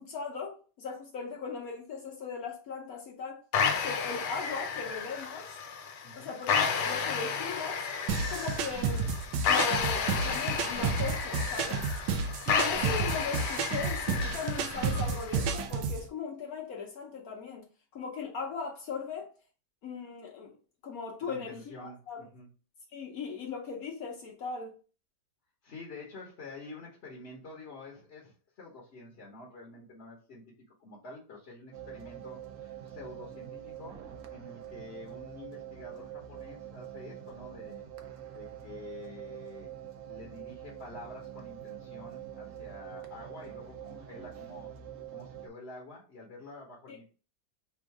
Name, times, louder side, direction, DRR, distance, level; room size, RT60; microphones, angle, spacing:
voice 1, 0.0-3.4 3.8-5.6 6.1-7.9 8.3-9.1 9.5-11.9 12.5-17.6 17.9-19.3 19.8-20.6 20.8-22.2 22.9-24.7 46.9-47.0, left 5 dB, 65° left, 1.2 m, -38 dB
sound 1, 3.5-15.5, left 6 dB, 85° left, 1.3 m, -32 dB
voice 2, 6.0-6.3 21.2-22.5 25.6-30.5 30.8-34.0 34.3-37.9 38.3-39.7 40.0-44.7 45.1-47.1, left 2 dB, 45° left, 1.1 m, -48 dB
sound 2, 8.1-16.0, right 5 dB, 90° right, 1.2 m, -31 dB
sound 3, 31.7-45.5, right 10 dB, 60° right, 0.9 m, -45 dB
3.5 x 2.5 x 4.6 m
omnidirectional pair, 1.8 m